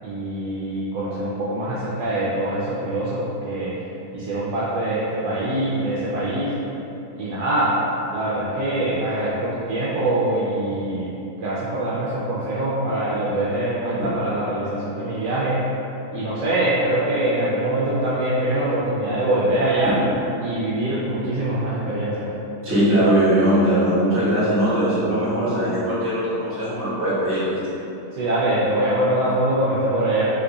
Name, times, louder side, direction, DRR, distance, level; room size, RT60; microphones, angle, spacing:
voice 1, 0.0-3.7 4.1-6.6 7.2-7.7 8.1-11.1 11.4-15.6 16.1-20.0 20.4-22.3 28.1-30.3, right 1 dB, 85° right, -8 dB, 1.2 m, -23 dB
voice 2, 22.6-27.6, right 1 dB, 10° right, -12 dB, 0.6 m, -20 dB
3.0 x 2.3 x 3.7 m, 2.9 s
omnidirectional pair, 1.8 m